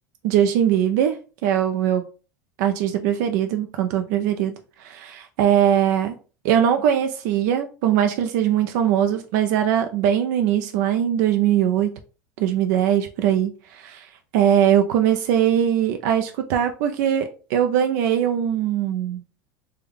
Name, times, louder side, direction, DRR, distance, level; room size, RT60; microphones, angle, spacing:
voice 1, 0.2-2.0 2.6-6.2 6.4-12.0 12.4-19.2, right 10 dB, 70° right, 0.4 m, -21 dB
3.4 x 2.2 x 3.4 m
hypercardioid pair, 95°, 10 cm